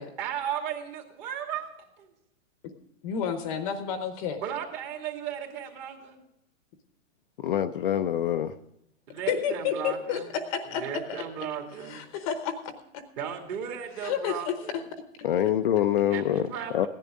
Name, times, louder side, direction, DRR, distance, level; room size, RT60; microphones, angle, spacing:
voice 1, 0.0-1.7 2.0-2.1 4.4-6.2 9.1-10.3 10.7-12.0 13.2-14.8 16.1-16.9, right 8 dB, 35° right, 3 dB, 2.4 m, -35 dB
voice 2, 3.0-4.4 9.3-10.8 11.1-11.2 11.9-12.6 12.9-13.0 14.0-14.8 15.4-15.5, left 8 dB, 25° left, 8 dB, 0.9 m, -30 dB
voice 3, 7.4-8.5 15.2-16.4 16.7-16.9, left 11 dB, 45° left, 7 dB, 0.5 m, -25 dB
16.5 x 10.5 x 3.7 m, 0.82 s
hypercardioid pair, 155°, 40 cm